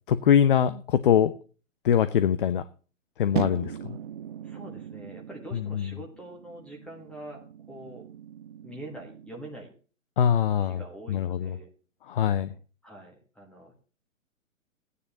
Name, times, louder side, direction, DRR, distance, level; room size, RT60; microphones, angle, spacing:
voice 1, 0.1-1.3 1.8-2.6 3.2-4.0 5.5-5.9 10.2-10.8 11.1-11.6 12.1-12.5, left 9 dB, 40° left, 14 dB, 0.6 m, -23 dB
sound 1, 3.3-9.6, right 9 dB, 40° right, 0.5 m, -38 dB
voice 2, 4.4-8.1 8.6-9.7 10.6-11.7 12.8-13.8, right 1 dB, 5° left, 0 dB, 1.4 m, -44 dB
15.5 x 9.6 x 2.9 m, 0.36 s
figure-of-eight pair, 125°, 40 cm